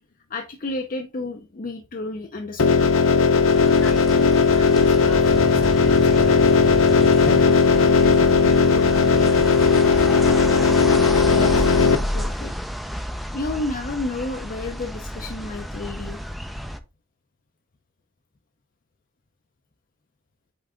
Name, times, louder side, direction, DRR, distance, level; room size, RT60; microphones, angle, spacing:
voice 1, 0.3-2.8 11.2-12.5 13.3-16.2, left 2 dB, 45° left, 0.6 m, -31 dB
sound 1, 2.6-12.0, left 5 dB, 90° left, 0.7 m, -17 dB
sound 2, 3.5-16.8, equal, ahead, 0.5 m, -31 dB
voice 2, 3.8-10.2, left 1 dB, 70° left, 3.4 m, -39 dB
8.4 x 3.4 x 3.7 m
head